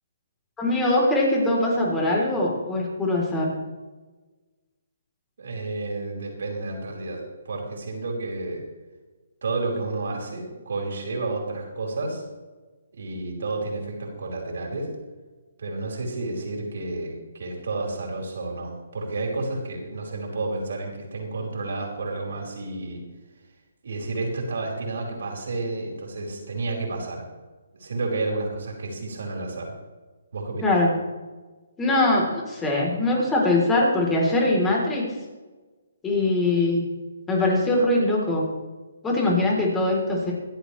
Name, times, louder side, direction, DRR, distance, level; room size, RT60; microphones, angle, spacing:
voice 1, 0.6-3.5 30.6-30.9 31.8-35.0 36.0-36.9 37.3-38.4 39.0-40.3, left 2 dB, 10° left, -3 dB, 3.9 m, -22 dB
voice 2, 5.4-8.6 9.4-12.2 12.9-14.9 15.6-23.0 23.8-27.2 27.7-29.7 30.3-30.7, right 2 dB, 70° right, 0 dB, 5.0 m, -31 dB
25.0 x 8.4 x 3.4 m, 1.3 s
hypercardioid pair, 155°, 0 cm